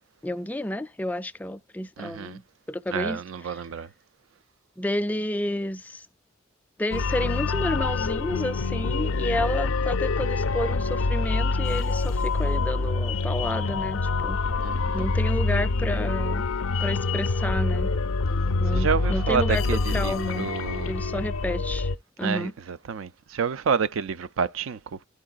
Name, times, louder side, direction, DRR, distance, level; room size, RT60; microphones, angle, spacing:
voice 1, 0.2-2.4 2.7-3.6 4.8-6.1 6.8-14.4 14.9-16.4 16.8-18.0 18.5-20.5 20.9-21.9 22.2-22.5, left 1 dB, 10° left, 0.3 m, -30 dB
voice 2, 2.0-2.4 2.9-3.9 14.6-15.0 18.7-20.9 22.2-25.0, right 6 dB, 75° right, 0.4 m, -29 dB
sound 1, 6.9-22.0, left 3 dB, 80° left, 0.4 m, -26 dB
11.5 x 4.7 x 2.3 m
head